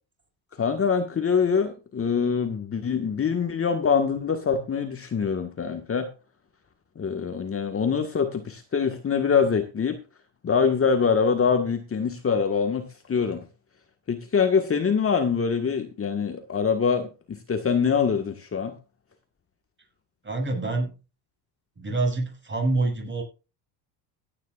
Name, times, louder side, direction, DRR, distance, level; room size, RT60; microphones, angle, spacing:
voice 1, 0.6-6.1 7.0-10.0 10.4-13.5 14.1-18.8, left 6 dB, 25° left, 5 dB, 1.6 m, -24 dB
voice 2, 20.2-20.9 21.8-23.2, right 2 dB, 25° right, 3 dB, 7.1 m, -26 dB
16.5 x 9.8 x 2.5 m, 0.31 s
cardioid pair, 105°, 49 cm